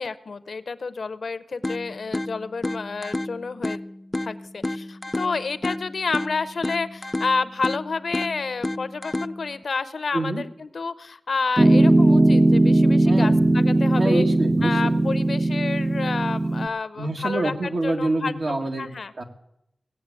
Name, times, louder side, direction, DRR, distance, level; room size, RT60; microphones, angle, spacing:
voice 1, 0.0-3.8 4.2-14.2 14.6-19.1, left 4 dB, 75° left, 15 dB, 0.7 m, -30 dB
sound 1, 1.6-9.6, left 1 dB, 25° left, 0.4 m, -31 dB
voice 2, 10.1-10.4 13.0-13.4 14.0-15.0 17.0-18.9 19.2-19.3, right 2 dB, 65° right, 3 dB, 1.8 m, -26 dB
Piano, 11.6-16.7, right 2 dB, 25° right, 0.5 m, -18 dB
17.5 x 7.4 x 8.3 m, 0.82 s
cardioid pair, 60°, 0 cm